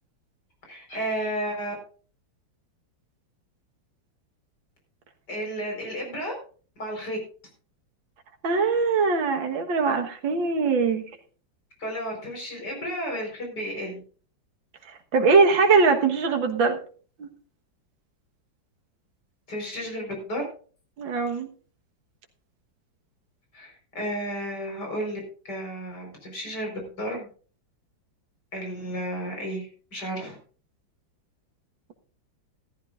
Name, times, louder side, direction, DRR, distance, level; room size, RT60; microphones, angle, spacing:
voice 1, 0.7-1.7 5.3-6.3 6.8-7.2 11.8-14.0 19.5-20.4 23.5-25.2 25.5-27.3 28.5-30.4, equal, 55° left, 1 dB, 5.2 m, -32 dB
voice 2, 8.4-11.0 15.1-16.8 17.2-17.3 21.0-21.5, right 4 dB, 75° right, 4 dB, 2.2 m, -21 dB
14.5 x 14.0 x 2.5 m, 0.40 s
omnidirectional pair, 2.1 m